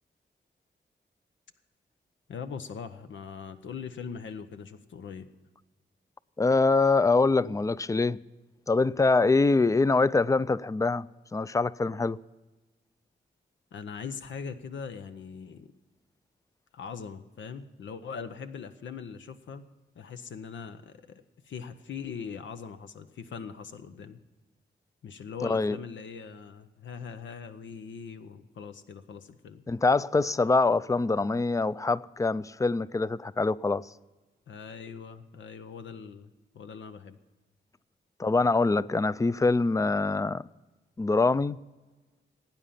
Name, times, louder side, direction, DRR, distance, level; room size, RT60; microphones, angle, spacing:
voice 1, 2.3-5.3 13.7-15.7 16.7-19.6 19.9-24.2 25.0-29.6 34.5-37.2, left 6 dB, 90° left, 0.8 m, -41 dB
voice 2, 6.4-8.2 8.7-11.1 11.3-12.2 25.4-25.8 29.7-33.9 38.2-40.4 41.0-41.6, left 3 dB, 15° left, 0.3 m, -24 dB
17.5 x 9.0 x 5.6 m
cardioid pair, 85°, 19 cm